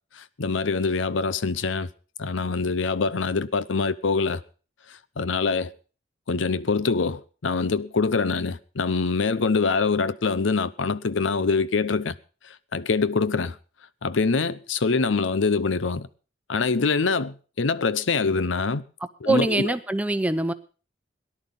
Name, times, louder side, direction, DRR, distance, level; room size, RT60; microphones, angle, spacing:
voice 1, 0.2-1.9 2.2-4.4 5.2-5.7 6.3-12.2 12.7-13.6 14.0-16.1 16.5-18.8 19.2-19.7, left 4 dB, 85° left, 0.7 m, -24 dB
voice 2, 19.3-20.5, right 2 dB, 5° right, 0.7 m, -23 dB
18.0 x 11.0 x 5.4 m
head